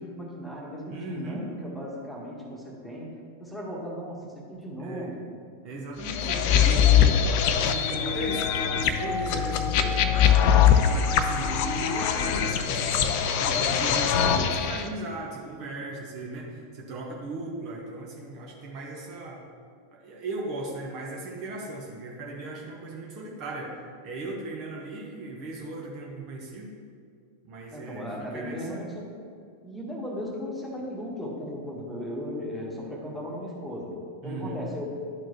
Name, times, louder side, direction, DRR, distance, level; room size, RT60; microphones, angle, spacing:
voice 1, 0.0-3.1 3.4-5.2 27.7-29.1 29.6-34.8, equal, 5° left, -3 dB, 1.5 m, -36 dB
voice 2, 0.9-1.4 4.8-5.1 5.6-10.1 10.7-19.4 19.9-23.8 24.0-26.8 27.4-28.8 34.2-34.6, right 2 dB, 40° right, -2 dB, 1.1 m, -37 dB
sound 1, 6.0-14.8, left 8 dB, 45° left, 0.5 m, -22 dB
11.5 x 4.5 x 3.1 m, 2.2 s
figure-of-eight pair, 90°, 0 cm